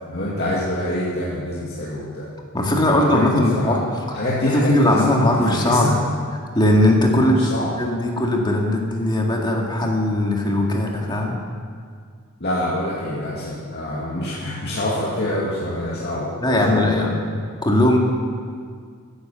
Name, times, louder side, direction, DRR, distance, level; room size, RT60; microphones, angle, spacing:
voice 1, 0.1-2.3 2.9-3.8 4.1-5.9 7.1-7.7 12.4-17.1, left 1 dB, 50° left, -7 dB, 2.3 m, -26 dB
voice 2, 2.5-3.8 4.4-5.9 6.5-7.5 7.8-11.4 16.4-17.2 17.6-18.0, left 1 dB, 20° left, 0 dB, 2.0 m, -19 dB
15.0 x 10.5 x 6.8 m, 2.1 s
head